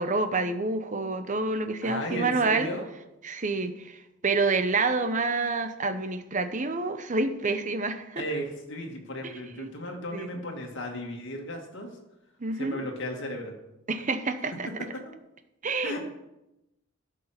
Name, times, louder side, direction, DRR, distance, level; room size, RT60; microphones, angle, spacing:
voice 1, 0.0-2.7 3.2-8.2 9.2-9.7 10.1-10.3 12.4-12.8 13.9-14.7 15.6-16.0, right 3 dB, 35° right, 10 dB, 0.8 m, -28 dB
voice 2, 1.8-2.9 8.2-11.9 12.5-13.6 14.9-15.0 15.8-16.0, equal, 60° left, 1 dB, 2.1 m, -35 dB
12.0 x 6.3 x 5.9 m, 0.92 s
head